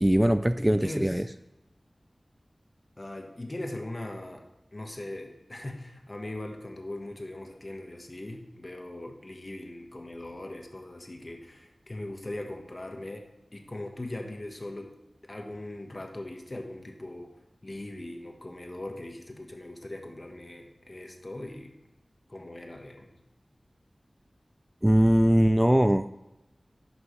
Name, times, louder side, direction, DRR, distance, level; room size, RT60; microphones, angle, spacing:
voice 1, 0.0-1.2 24.8-26.1, right 1 dB, 15° right, 10 dB, 0.3 m, -21 dB
voice 2, 0.7-1.2 3.0-4.4 4.7-13.3 13.5-14.9 15.2-17.3 17.6-21.7 22.3-23.1, left 1 dB, 40° left, 3 dB, 1.3 m, -40 dB
11.0 x 6.2 x 3.2 m, 0.96 s
wide cardioid pair, 50°, 0 cm